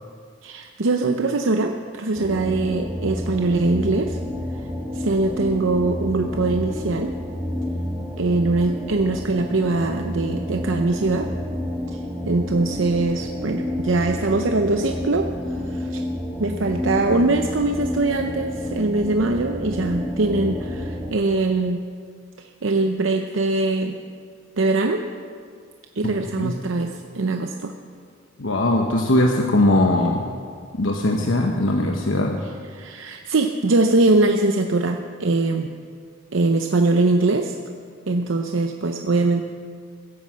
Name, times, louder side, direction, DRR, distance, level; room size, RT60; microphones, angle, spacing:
voice 1, 0.4-4.2 4.6-4.7 4.9-7.1 8.2-11.3 11.9-12.0 12.2-16.0 16.4-21.8 22.4-24.0 24.6-25.0 25.9-27.7 32.7-35.7 36.3-37.6 38.1-39.4, right 2 dB, 85° right, 5 dB, 0.7 m, -22 dB
sound 1, 2.1-21.1, left 1 dB, 10° right, 1.8 m, -29 dB
voice 2, 26.0-26.6 28.4-30.2 30.8-32.4, left 1 dB, 90° left, 2 dB, 1.1 m, -20 dB
16.5 x 9.6 x 7.5 m, 2.1 s
head